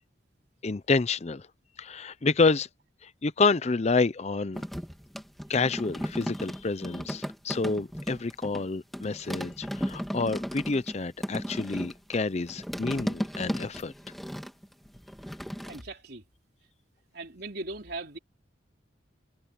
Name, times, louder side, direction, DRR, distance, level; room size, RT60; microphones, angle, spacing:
voice 1, 0.6-1.5 1.8-2.7 3.0-4.6 5.5-13.9, left 3 dB, 35° left, 0.5 m, -28 dB
sound 1, 4.5-8.7 8.9-15.8, equal, ahead, 2.2 m, -35 dB
voice 2, 15.6-16.2 17.1-18.2, right 2 dB, 55° right, 4.1 m, -39 dB
head